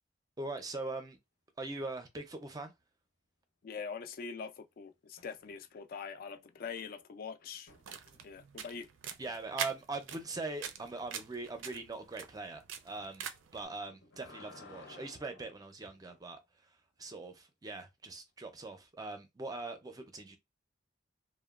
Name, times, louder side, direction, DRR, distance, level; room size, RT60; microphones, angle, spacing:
voice 1, 0.4-1.2 1.6-2.7 9.2-13.3 13.5-16.4 17.0-20.4, right 3 dB, 20° right, 0.4 m, -41 dB
voice 2, 3.6-7.7 8.2-8.9, left 6 dB, 50° left, 0.3 m, -43 dB
sound 1, 5.2-5.8 6.1-8.5 10.1-10.3 13.7-16.2 18.4-18.5, left 3 dB, 85° left, 0.8 m, -57 dB
sound 2, 7.7-13.6, right 8 dB, 85° right, 0.4 m, -44 dB
2.9 x 2.1 x 2.3 m
head